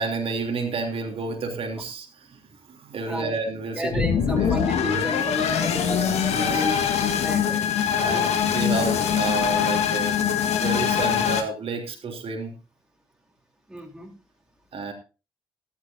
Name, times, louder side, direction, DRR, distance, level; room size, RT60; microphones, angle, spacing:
voice 1, 0.0-2.4 2.7-3.9 4.4-4.5 6.2-6.6 7.6-10.2 10.6-12.5 14.7-14.9, right 4 dB, 50° right, 2 dB, 3.2 m, -30 dB
voice 2, 3.8-7.6 7.9-8.2 13.7-14.1, equal, 5° right, 1 dB, 3.6 m, -32 dB
sound 1, 3.9-11.4, left 8 dB, 60° left, 1.9 m, -23 dB
15.0 x 14.0 x 2.7 m, 0.32 s
figure-of-eight pair, 45°, 13 cm